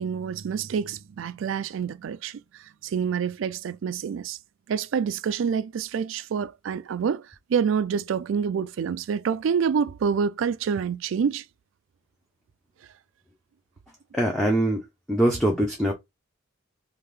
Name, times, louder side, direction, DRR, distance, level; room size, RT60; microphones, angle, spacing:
voice 1, 0.0-4.4 4.7-11.4, right 6 dB, 70° right, 0.3 m, -27 dB
voice 2, 14.1-15.9, right 1 dB, ahead, 0.5 m, -23 dB
3.6 x 2.4 x 3.2 m
head